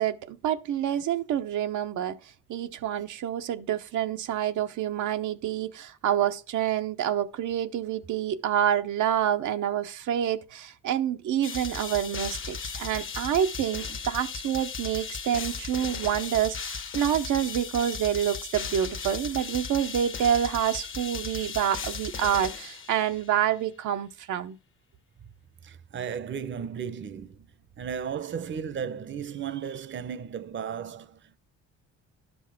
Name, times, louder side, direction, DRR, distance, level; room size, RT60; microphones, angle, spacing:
voice 1, 0.0-24.6, right 10 dB, 75° right, 0.8 m, -27 dB
sound 1, 11.4-23.3, left 5 dB, 45° left, 1.1 m, -36 dB
voice 2, 25.6-27.5 27.8-31.4, right 7 dB, 40° right, 0.7 m, -35 dB
11.5 x 5.5 x 5.8 m
cardioid pair, 90°, 30 cm